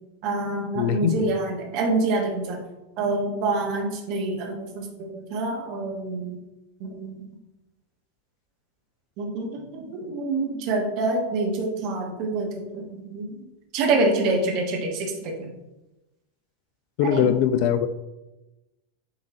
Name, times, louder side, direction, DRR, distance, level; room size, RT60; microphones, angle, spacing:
voice 1, 0.2-2.6 3.0-6.4 6.8-7.3 9.2-13.3 13.7-15.5 17.0-17.3, right 2 dB, 40° right, 0 dB, 1.4 m, -26 dB
voice 2, 0.7-1.3 17.0-17.9, left 9 dB, 45° left, 12 dB, 0.4 m, -22 dB
8.8 x 3.6 x 3.0 m, 1.0 s
figure-of-eight pair, 90°, 0 cm